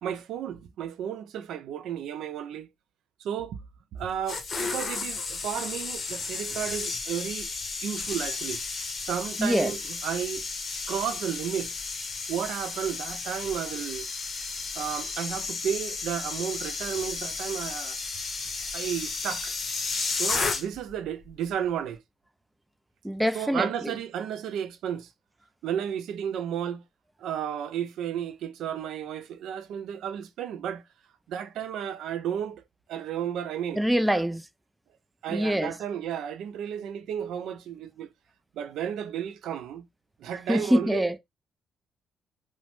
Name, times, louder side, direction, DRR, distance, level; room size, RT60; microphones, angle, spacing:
voice 1, 0.0-2.7 3.2-3.6 3.9-7.5 7.8-8.6 9.0-10.5 10.9-11.7 12.3-14.1 14.8-18.0 18.7-19.5 20.1-22.0 23.3-25.1 25.6-26.8 27.2-30.8 31.3-32.6 32.9-33.8 34.1-34.2 35.2-38.1 38.6-39.9 40.2-41.0, right 9 dB, 80° right, 0.4 m, -33 dB
sound 1, 4.0-21.0 21.2-21.5, left 4 dB, 45° left, 0.7 m, -33 dB
voice 2, 9.4-9.7 23.0-23.9 33.8-34.5 35.3-35.7 40.5-41.2, equal, 5° right, 0.3 m, -25 dB
2.9 x 2.0 x 3.0 m
cardioid pair, 90°, 0 cm